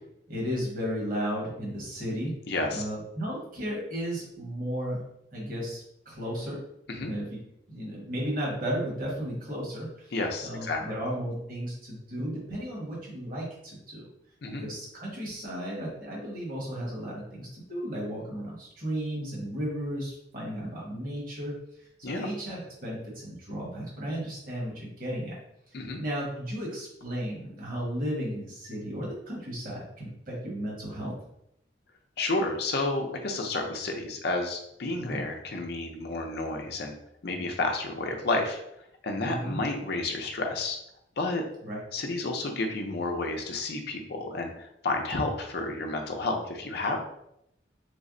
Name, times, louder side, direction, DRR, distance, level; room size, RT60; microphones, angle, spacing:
voice 1, 0.3-2.3 2.7-5.0 5.3-6.6 7.0-7.4 7.7-10.1 10.4-14.1 14.6-25.4 26.0-31.1 35.0-35.2 39.2-39.6 41.6-41.8, equal, 50° right, -4 dB, 1.2 m, -34 dB
voice 2, 2.5-2.8 6.9-7.1 10.1-10.9 14.4-14.6 22.0-22.3 25.7-26.0 32.2-36.9 37.2-38.6 39.0-40.8 41.2-41.5 41.9-47.0, left 2 dB, 60° left, 3 dB, 0.5 m, -31 dB
3.3 x 2.1 x 3.7 m, 0.78 s
head